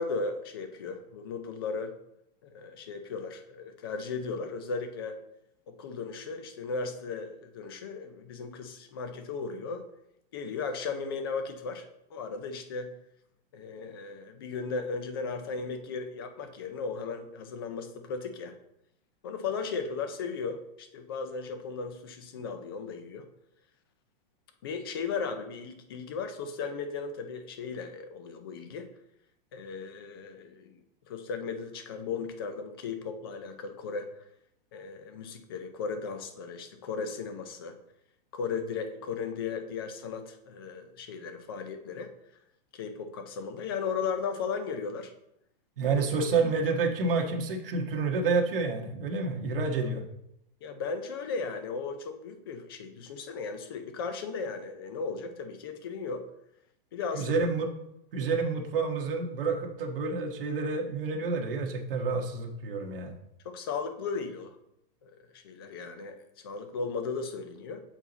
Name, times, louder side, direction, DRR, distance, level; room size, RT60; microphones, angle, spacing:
voice 1, 0.0-1.9 2.4-5.2 5.7-9.9 10.3-12.9 13.5-18.6 19.2-23.3 24.6-28.9 29.5-34.2 34.7-37.8 38.3-42.1 42.7-45.1 45.8-46.3 49.8-49.9 50.6-56.3 56.9-57.4 63.4-64.6 65.0-67.8, left 5 dB, 25° left, 7 dB, 0.4 m, -36 dB
voice 2, 45.8-50.0 57.1-57.7 58.1-63.1, right 4 dB, 70° right, 2 dB, 1.3 m, -29 dB
7.1 x 4.8 x 3.9 m, 0.80 s
supercardioid pair, 180°, 29 cm